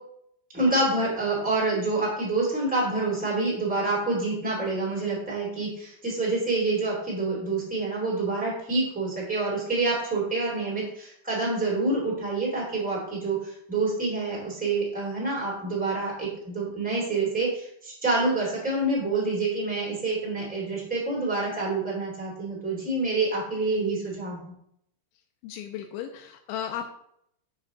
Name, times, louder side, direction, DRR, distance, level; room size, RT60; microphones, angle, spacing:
voice 1, 0.5-24.5, right 3 dB, 5° right, -5 dB, 0.6 m, -27 dB
voice 2, 25.4-26.9, left 9 dB, 90° left, 5 dB, 2.7 m, -35 dB
7.6 x 6.3 x 3.8 m, 0.72 s
omnidirectional pair, 5.9 m